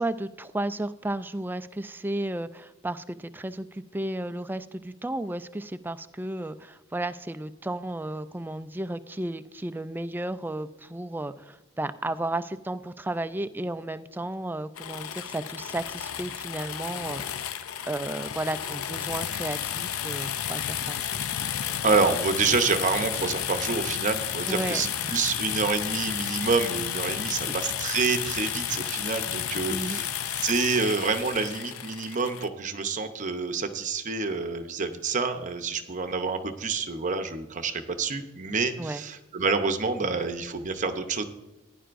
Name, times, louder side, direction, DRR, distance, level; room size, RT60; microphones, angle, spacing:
voice 1, 0.0-17.2 17.9-21.3 24.5-25.1 27.2-27.6 29.7-30.1 38.8-39.0, right 1 dB, 10° right, 12 dB, 0.3 m, -33 dB
sound 1, 14.8-32.5, left 10 dB, 85° left, 0.6 m, -32 dB
voice 2, 21.8-41.2, right 4 dB, 35° right, 7 dB, 0.7 m, -28 dB
16.0 x 10.0 x 2.5 m, 1.0 s
head